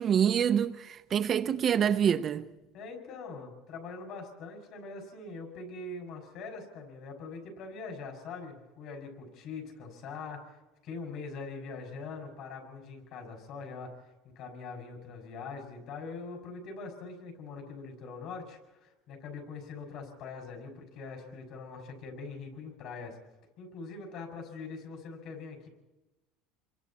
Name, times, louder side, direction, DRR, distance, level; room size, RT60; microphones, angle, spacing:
voice 1, 0.0-2.5, right 8 dB, 30° right, 0.7 m, -26 dB
voice 2, 2.7-13.9 14.4-23.2 23.6-25.7, left 4 dB, 55° left, 5.9 m, -43 dB
28.0 x 23.0 x 4.3 m
cardioid pair, 145°, 0 cm